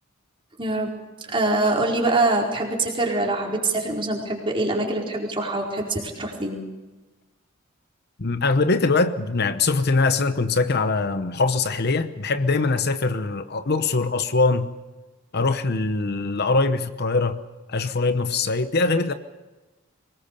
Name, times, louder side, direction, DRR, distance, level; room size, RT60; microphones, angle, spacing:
voice 1, 0.6-0.9 1.2-6.6, right 2 dB, 25° right, 4.6 m, -24 dB
voice 2, 8.2-14.7 15.3-17.4 17.7-19.1, left 3 dB, 50° left, 0.9 m, -22 dB
23.5 x 20.0 x 6.8 m
head